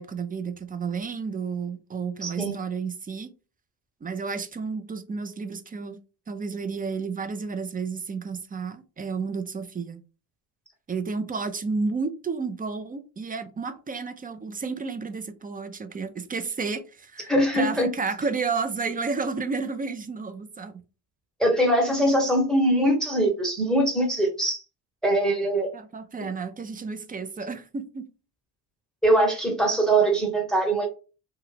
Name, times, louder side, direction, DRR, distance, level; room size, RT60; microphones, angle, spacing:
voice 1, 0.0-3.3 4.0-6.0 6.3-10.0 10.9-20.8 25.7-28.1, right 4 dB, 20° right, 0.5 m, -31 dB
voice 2, 2.2-2.6 17.3-17.9 21.4-24.6 25.0-25.7 29.0-30.9, right 1 dB, ahead, 1.0 m, -22 dB
2.7 x 2.3 x 3.3 m
supercardioid pair, 75°, 39 cm